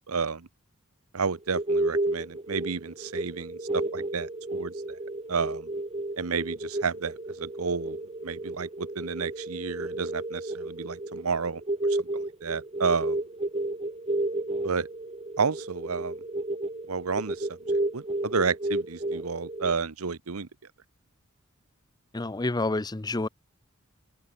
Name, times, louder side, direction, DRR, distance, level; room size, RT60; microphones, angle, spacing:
voice 1, 0.1-0.5 1.1-5.0 5.3-5.7 6.2-8.0 8.2-11.6 12.0-12.1 12.4-13.2 14.6-14.9 15.4-16.2 16.9-20.5, right 5 dB, 85° right, 1.0 m, -31 dB
sound 1, 1.4-19.7, right 2 dB, 30° right, 1.3 m, -32 dB
voice 2, 22.1-23.3, left 2 dB, 20° left, 0.6 m, -28 dB
head